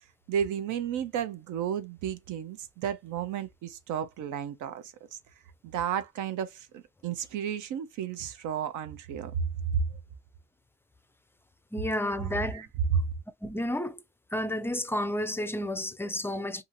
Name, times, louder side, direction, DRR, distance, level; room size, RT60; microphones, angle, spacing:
voice 1, 0.3-4.9 5.6-9.4 9.7-9.8 12.2-13.0, right 8 dB, 80° right, 0.5 m, -32 dB
voice 2, 11.7-12.7 13.4-14.0 14.3-16.6, left 1 dB, 10° left, 0.3 m, -31 dB
2.7 x 2.4 x 2.6 m
cardioid pair, 90°, 30 cm